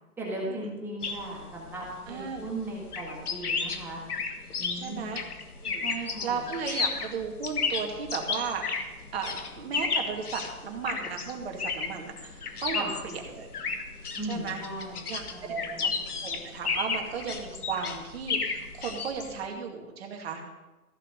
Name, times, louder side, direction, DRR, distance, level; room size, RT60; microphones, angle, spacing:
voice 1, 0.2-4.0 4.6-5.1 5.8-6.4 12.7-12.9 14.1-16.2, right 1 dB, 5° right, -4 dB, 1.6 m, -37 dB
sound 1, 1.0-19.5, left 5 dB, 80° left, 1.5 m, -33 dB
voice 2, 2.1-2.5 4.8-5.2 5.6-8.6 9.1-13.5 14.3-14.6 15.1-15.9 16.2-20.4, right 5 dB, 40° right, 1 dB, 2.3 m, -35 dB
15.0 x 5.8 x 6.8 m, 1.1 s
hypercardioid pair, 155°, 45 cm